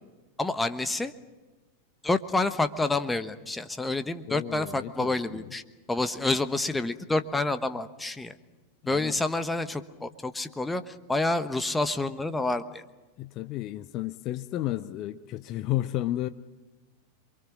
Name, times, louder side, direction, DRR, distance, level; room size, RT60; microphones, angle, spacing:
voice 1, 0.4-1.1 2.0-5.6 5.9-8.4 8.8-12.8, left 2 dB, 10° left, 11 dB, 1.2 m, -28 dB
voice 2, 4.3-5.5 8.8-9.2 13.2-16.3, left 14 dB, 40° left, 12 dB, 0.8 m, -32 dB
28.0 x 23.0 x 6.2 m, 1.2 s
figure-of-eight pair, 90°, 0 cm